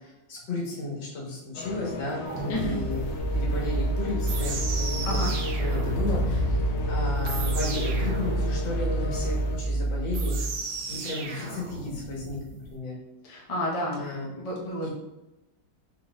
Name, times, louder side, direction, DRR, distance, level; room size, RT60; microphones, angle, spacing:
voice 1, 0.3-3.0 3.3-5.2 5.6-6.6 6.9-10.4 10.9-12.9 13.9-14.3 14.8-14.9, left 2 dB, 90° left, -3 dB, 1.9 m, -34 dB
sound 1, 1.5-9.5, left 2 dB, 70° left, 1.1 m, -32 dB
sound 2, 2.2-12.7, right 4 dB, 75° right, 1.3 m, -37 dB
voice 2, 2.5-2.8 5.0-5.4 13.2-14.0 14.3-14.9, left 1 dB, 30° left, -4 dB, 0.6 m, -30 dB
sound 3, 3.2-10.5, right 2 dB, 90° right, 1.7 m, -28 dB
4.7 x 4.0 x 2.3 m, 0.99 s
omnidirectional pair, 2.1 m